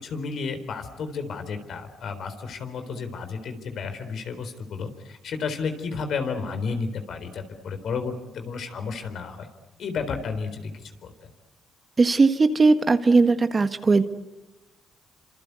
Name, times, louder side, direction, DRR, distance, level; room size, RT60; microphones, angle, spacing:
voice 1, 0.0-9.5 9.8-11.1, left 5 dB, 65° left, 8 dB, 4.0 m, -32 dB
voice 2, 12.0-14.0, right 3 dB, 30° right, 9 dB, 1.6 m, -18 dB
27.5 x 26.5 x 8.3 m, 1.1 s
cardioid pair, 90°, 0 cm